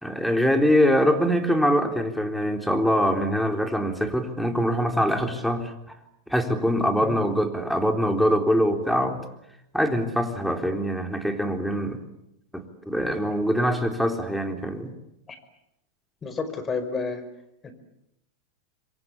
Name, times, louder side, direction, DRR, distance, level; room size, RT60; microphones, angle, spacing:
voice 1, 0.0-6.0 6.3-9.2 9.7-12.0 12.5-14.9, equal, ahead, 5 dB, 3.9 m, -23 dB
voice 2, 16.2-17.2 17.6-17.7, left 4 dB, 25° left, 10 dB, 5.1 m, -30 dB
27.0 x 23.0 x 8.6 m, 0.81 s
hypercardioid pair, 110°, 0 cm